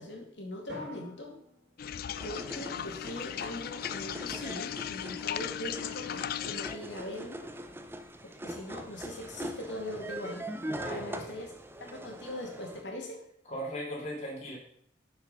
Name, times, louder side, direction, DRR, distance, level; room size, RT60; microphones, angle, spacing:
voice 1, 0.0-1.3 2.2-7.5 8.2-10.5 10.9-11.5 11.8-13.2, left 1 dB, 70° left, 0 dB, 2.2 m, -41 dB
Drum, 0.7-3.0, left 2 dB, 75° right, 3.8 m, -49 dB
sound 1, 1.8-6.8, left 10 dB, 55° left, 0.3 m, -37 dB
sound 2, 2.1-12.8, right 1 dB, 10° right, 0.5 m, -42 dB
voice 2, 10.7-11.2 13.5-14.6, equal, 35° left, -5 dB, 2.4 m, -38 dB
6.6 x 6.0 x 5.4 m, 0.67 s
head